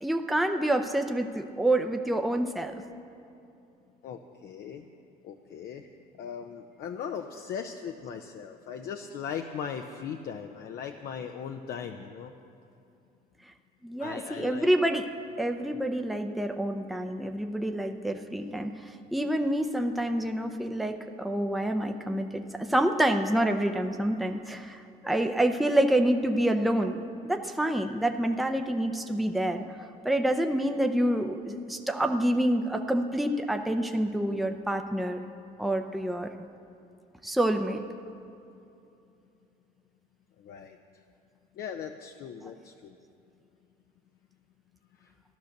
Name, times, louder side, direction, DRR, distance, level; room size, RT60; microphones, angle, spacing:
voice 1, 0.0-2.7 13.8-15.1 15.4-18.7 19.1-29.6 30.0-35.2 35.6-36.3 37.2-37.8, right 1 dB, ahead, 4 dB, 0.7 m, -27 dB
voice 2, 4.0-4.8 5.2-5.9 6.2-12.3 14.0-14.7 40.4-40.8 41.6-42.9 45.0-45.1, left 7 dB, 65° left, 4 dB, 0.7 m, -38 dB
13.5 x 11.5 x 6.6 m, 2.7 s
cardioid pair, 110°, 17 cm